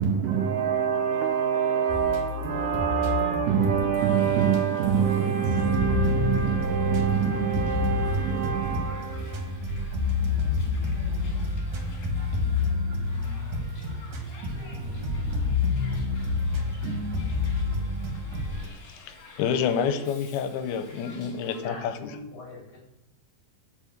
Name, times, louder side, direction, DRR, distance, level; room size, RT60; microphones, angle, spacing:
voice 1, 0.0-9.9, right 7 dB, 80° right, 2.0 m, -25 dB
sound 1, 1.9-4.6 4.8-5.1 5.4-18.7, left 3 dB, 60° right, 2.5 m, -29 dB
Hiss, 4.0-21.6, left 2 dB, 65° left, 3.8 m, -49 dB
voice 2, 18.9-22.2, left 7 dB, 85° left, 2.6 m, -29 dB
voice 3, 21.6-22.8, left 3 dB, 45° left, 4.7 m, -41 dB
8.7 x 4.9 x 7.7 m
omnidirectional pair, 4.4 m